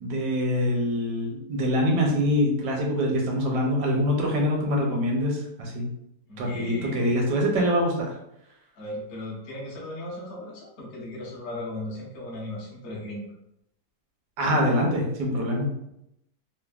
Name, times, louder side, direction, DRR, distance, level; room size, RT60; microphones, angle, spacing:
voice 1, 0.0-5.9 6.4-8.1 14.4-15.7, equal, 75° right, 0 dB, 1.3 m, -24 dB
voice 2, 6.2-7.1 8.7-13.3, left 1 dB, 55° left, -4 dB, 0.8 m, -37 dB
3.2 x 2.1 x 2.2 m, 0.81 s
omnidirectional pair, 1.8 m